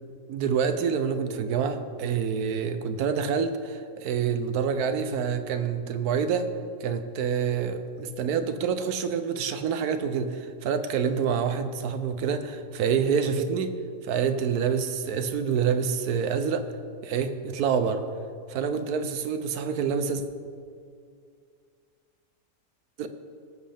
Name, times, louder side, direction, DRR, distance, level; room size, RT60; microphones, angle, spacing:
voice 1, 0.3-6.5 6.8-13.7 14.0-16.7 17.0-18.1 18.5-20.2 23.0-23.1, right 6 dB, 90° right, 9 dB, 1.2 m, -27 dB
18.5 x 7.6 x 3.4 m, 2.3 s
omnidirectional pair, 1.6 m